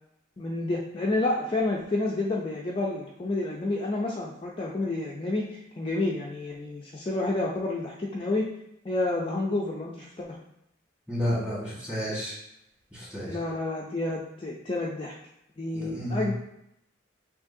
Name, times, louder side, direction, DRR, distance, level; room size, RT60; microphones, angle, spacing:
voice 1, 0.4-8.5 8.8-10.3 13.2-15.1 15.6-16.3, left 2 dB, 25° left, -3 dB, 0.4 m, -29 dB
voice 2, 11.1-12.3 12.9-13.4 15.7-16.3, equal, 5° right, -7 dB, 1.5 m, -31 dB
6.1 x 2.8 x 2.7 m, 0.80 s
head